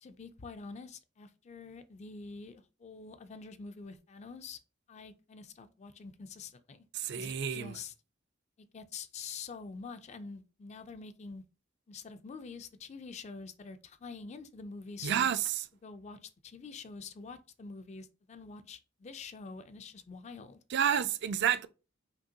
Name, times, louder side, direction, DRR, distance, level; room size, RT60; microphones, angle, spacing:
voice 1, 0.0-4.6 4.9-6.8 7.1-7.9 8.7-11.4 11.9-15.3 15.8-20.6, left 4 dB, 35° left, 0.3 m, -46 dB
voice 2, 6.9-7.8 15.0-15.6 20.7-21.7, right 8 dB, 55° right, 0.3 m, -30 dB
5.2 x 2.8 x 2.7 m
head